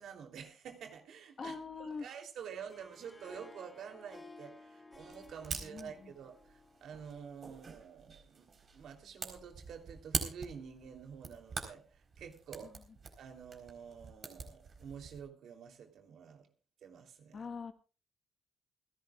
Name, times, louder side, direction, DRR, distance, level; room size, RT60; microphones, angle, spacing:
voice 1, 0.0-8.5 8.7-12.7 13.2-16.5 16.8-17.5, right 7 dB, 70° right, 3.3 m, -49 dB
voice 2, 1.4-2.1 5.5-6.1 17.3-17.7, left 5 dB, 45° left, 1.5 m, -43 dB
Harp, 2.5-7.7, left 2 dB, 15° left, 3.4 m, -56 dB
sound 1, 4.9-15.2, right 4 dB, 45° right, 4.2 m, -45 dB
29.0 x 11.5 x 2.4 m
cardioid pair, 90°, 0 cm